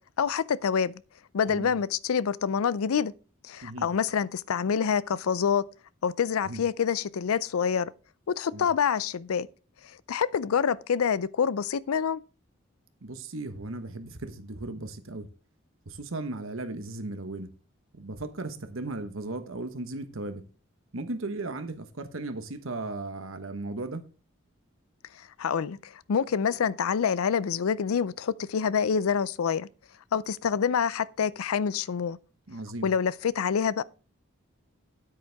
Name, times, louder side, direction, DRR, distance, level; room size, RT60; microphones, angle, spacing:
voice 1, 0.2-1.0 1.3-3.1 3.4-5.6 6.0-7.9 8.3-9.5 10.1-12.2 25.4-29.7 30.1-32.2 32.8-33.8, left 7 dB, 90° left, 0.4 m, -26 dB
voice 2, 13.0-15.3 15.9-17.5 17.9-20.4 20.9-24.0 32.5-32.9, right 2 dB, 75° right, 1.2 m, -36 dB
9.8 x 8.4 x 3.5 m
head